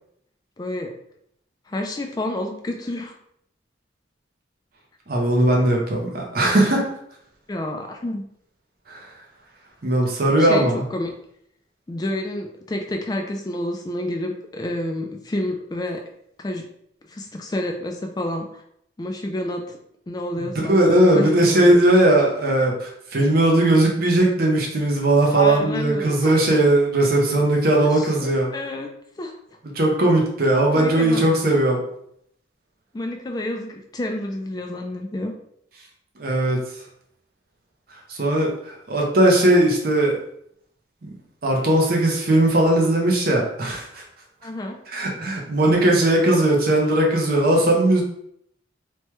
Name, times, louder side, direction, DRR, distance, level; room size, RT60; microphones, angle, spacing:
voice 1, 0.6-0.9 1.7-3.1 7.5-8.3 10.4-11.1 11.9-16.0 16.4-16.7 17.1-18.6 19.0-19.8 20.1-20.8 21.1-21.8 25.3-26.4 27.8-28.9 29.2-29.3 30.7-31.2 32.9-35.3 44.4-44.8, left 1 dB, 20° left, 3 dB, 0.3 m, -29 dB
voice 2, 5.1-6.9 8.9-9.1 9.8-10.8 20.4-28.5 29.7-31.8 36.2-36.6 38.1-40.2 41.0-41.1 41.4-44.0 44.9-48.0, right 1 dB, 50° right, -1 dB, 0.6 m, -18 dB
3.1 x 2.2 x 3.0 m, 0.72 s
head